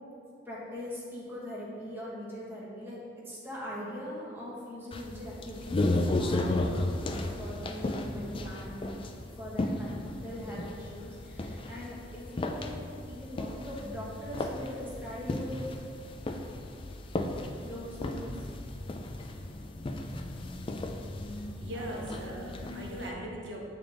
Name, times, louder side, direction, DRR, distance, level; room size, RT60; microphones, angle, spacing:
voice 1, 0.4-6.7 7.1-8.8 9.4-10.0 10.2-12.8 13.1-15.8 17.6-18.5 20.3-20.8 21.3-21.5 21.7-22.4, equal, 10° right, -7 dB, 1.2 m, -41 dB
sound 1, 4.9-23.1, left 2 dB, 30° left, 0.4 m, -35 dB
voice 2, 21.3-23.7, right 1 dB, 70° right, -2 dB, 1.1 m, -40 dB
8.6 x 3.9 x 3.4 m, 2.3 s
head